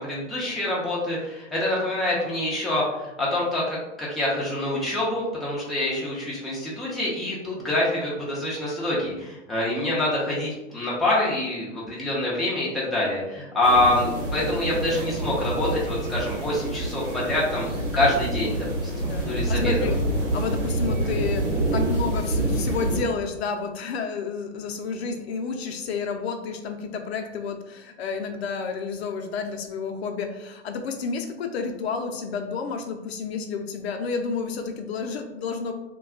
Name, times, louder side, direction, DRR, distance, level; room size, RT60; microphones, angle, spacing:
voice 1, 0.0-17.7 17.9-19.8, left 1 dB, ahead, -7 dB, 0.4 m, -26 dB
sound 1, 13.6-23.0, right 1 dB, 90° right, 1.1 m, -27 dB
voice 2, 19.1-20.0 20.3-35.7, left 5 dB, 60° left, 5 dB, 0.5 m, -30 dB
2.3 x 2.2 x 3.5 m, 0.96 s
hypercardioid pair, 110°, 36 cm